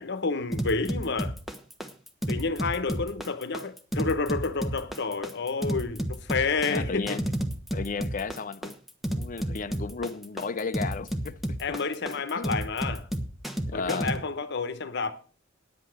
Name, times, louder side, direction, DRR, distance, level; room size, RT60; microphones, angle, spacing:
voice 1, 0.0-1.3 2.3-7.2 11.6-13.1 13.7-15.1, left 4 dB, 60° left, 1.0 m, -30 dB
sound 1, 0.5-14.2, equal, ahead, 1.2 m, -31 dB
voice 2, 6.7-7.3 7.7-8.7 9.2-11.8 12.1-12.6 13.7-14.1, left 4 dB, 40° left, 0.5 m, -34 dB
10.0 x 8.2 x 6.4 m
head